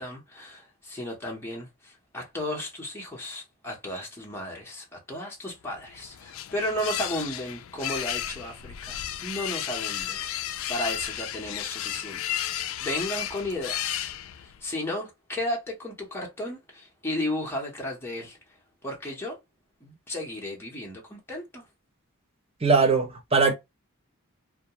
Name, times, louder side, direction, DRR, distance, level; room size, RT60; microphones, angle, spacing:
voice 1, 0.0-12.2 12.5-14.1 14.4-18.4 18.8-19.4 19.8-21.6, left 1 dB, 10° left, 0.8 m, -34 dB
sound 1, 5.7-14.6, left 11 dB, 65° left, 0.3 m, -33 dB
voice 2, 22.6-23.5, right 4 dB, 25° right, 0.6 m, -21 dB
2.3 x 2.2 x 2.8 m
head